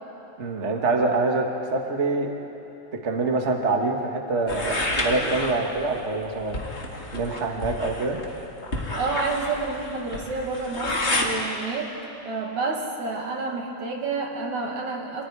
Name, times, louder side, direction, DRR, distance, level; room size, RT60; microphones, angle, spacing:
voice 1, 0.4-2.3 3.0-6.6 7.1-8.2, right 3 dB, 35° right, 2 dB, 1.2 m, -25 dB
sound 1, 4.5-11.3, left 2 dB, 20° left, 2.2 m, -30 dB
voice 2, 8.9-11.9 12.3-15.2, right 3 dB, 60° right, 0 dB, 3.5 m, -29 dB
29.5 x 26.5 x 4.8 m, 3.0 s
omnidirectional pair, 3.8 m